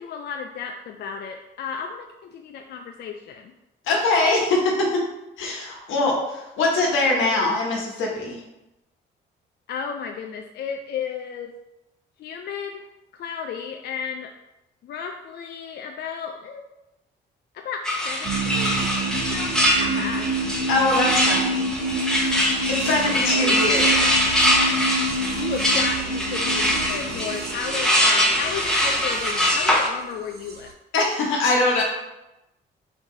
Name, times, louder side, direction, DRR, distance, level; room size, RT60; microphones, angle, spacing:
voice 1, 0.0-3.5 9.7-11.5 12.2-12.9 13.1-14.3 14.8-16.6 17.5-18.9 19.3-20.3 23.1-23.6 25.0-30.7, left 6 dB, 55° left, 3 dB, 0.4 m, -33 dB
voice 2, 3.8-5.0 5.4-8.4 20.7-21.7 22.7-24.0 30.9-31.8, left 2 dB, 85° left, -1 dB, 1.2 m, -22 dB
sound 1, 17.9-29.9, equal, 5° left, 0.9 m, -23 dB
sound 2, 18.2-30.7, right 2 dB, 50° right, 0.7 m, -29 dB
4.5 x 2.7 x 3.8 m, 0.94 s
cardioid pair, 90°, 20 cm